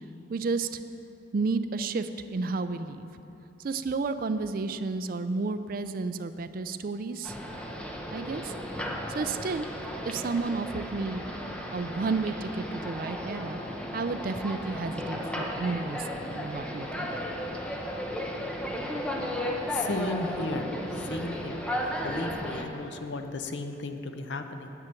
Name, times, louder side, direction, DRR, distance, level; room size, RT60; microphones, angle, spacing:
voice 1, 0.3-0.8 1.3-3.1 3.6-7.3 8.1-8.5 9.1-9.7 10.1-11.2 11.7-13.6 13.9-17.2, right 3 dB, 50° right, 10 dB, 0.4 m, -31 dB
sound 1, 7.2-22.6, equal, 5° left, 0.8 m, -34 dB
voice 2, 19.7-21.6 22.0-24.7, left 2 dB, 70° left, 7 dB, 0.7 m, -35 dB
9.5 x 5.8 x 8.4 m, 2.9 s
head